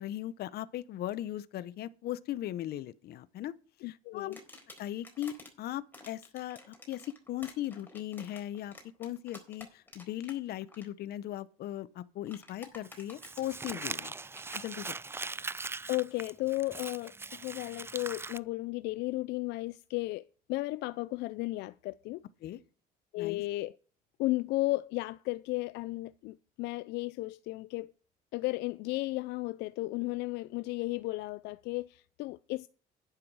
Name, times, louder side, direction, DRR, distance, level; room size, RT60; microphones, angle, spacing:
voice 1, 0.0-3.5 3.8-4.3 4.8-14.1 14.5-15.0 22.4-22.6 23.2-23.4, left 13 dB, 70° left, 0.9 m, -38 dB
voice 2, 3.8-4.4 15.9-22.2 23.1-23.8 24.2-27.9 28.3-32.7, left 20 dB, 85° left, 0.4 m, -34 dB
sound 1, 4.3-5.5 5.9-10.4 10.6-10.9 12.3-14.6, left 2 dB, 10° left, 4.1 m, -51 dB
Crumpling crinkling, 12.8-18.4, right 3 dB, 15° right, 0.4 m, -40 dB
11.0 x 9.6 x 4.8 m
cardioid pair, 110°, 17 cm